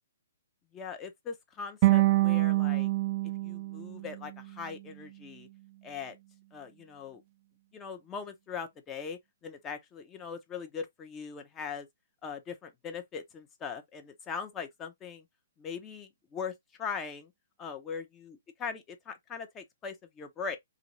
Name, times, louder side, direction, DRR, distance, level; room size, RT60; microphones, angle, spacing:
voice 1, 0.7-2.9 3.4-5.5 5.8-6.2 6.5-7.2 7.7-11.9 12.2-15.3 15.6-16.5 16.8-17.3 17.6-20.6, left 6 dB, 20° left, 0.7 m, -40 dB
sound 1, 1.8-4.9, right 18 dB, 40° right, 0.3 m, -27 dB
3.0 x 2.5 x 2.9 m
hypercardioid pair, 140°, 0 cm